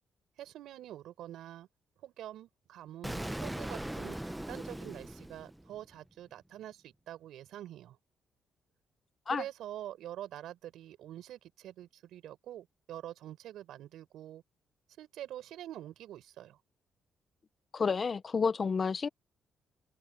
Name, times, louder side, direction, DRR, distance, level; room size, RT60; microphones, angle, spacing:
voice 1, 0.4-1.7 2.0-8.0 9.3-14.4 15.0-16.6, right 12 dB, 80° right, 5.5 m, -46 dB
Explosion, 3.0-5.9, right 1 dB, 5° right, 0.8 m, -39 dB
voice 2, 17.7-19.1, left 5 dB, 40° left, 0.8 m, -30 dB
cardioid pair, 90°, 0 cm